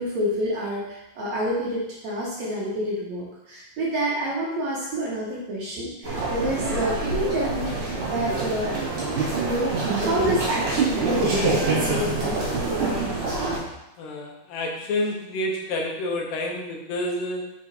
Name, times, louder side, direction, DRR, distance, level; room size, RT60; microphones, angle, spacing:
voice 1, 0.0-8.8 9.0-12.5, right 1 dB, 65° right, -5 dB, 2.0 m, -28 dB
sound 1, 6.0-13.6, right 3 dB, 50° right, 2.7 m, -26 dB
voice 2, 14.0-17.5, left 1 dB, 75° left, 1 dB, 2.4 m, -29 dB
5.9 x 4.4 x 4.2 m, 0.90 s
omnidirectional pair, 4.1 m